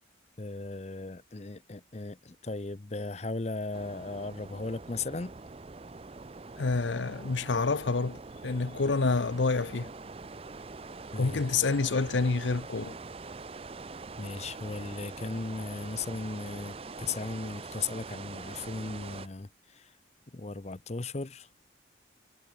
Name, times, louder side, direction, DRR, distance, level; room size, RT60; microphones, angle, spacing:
voice 1, 0.4-5.3 11.1-11.4 14.2-19.9 20.3-21.5, left 3 dB, 35° left, 0.7 m, -37 dB
sound 1, 3.7-19.3, right 3 dB, 30° right, 0.5 m, -44 dB
voice 2, 6.6-9.9 11.2-13.0, left 4 dB, 75° left, 0.8 m, -28 dB
head